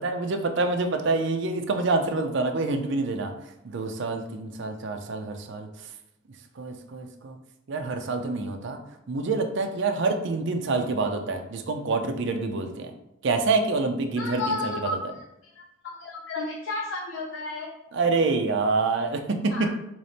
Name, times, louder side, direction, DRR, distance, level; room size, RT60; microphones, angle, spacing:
voice 1, 0.0-3.3 3.6-5.7 6.6-7.4 7.7-8.8 9.1-12.9 13.2-15.0 17.9-19.8, right 3 dB, 65° right, 5 dB, 0.5 m, -27 dB
voice 2, 14.2-15.0 15.8-17.7 19.5-19.7, left 2 dB, 70° left, -1 dB, 0.6 m, -32 dB
3.4 x 3.0 x 4.0 m, 0.84 s
head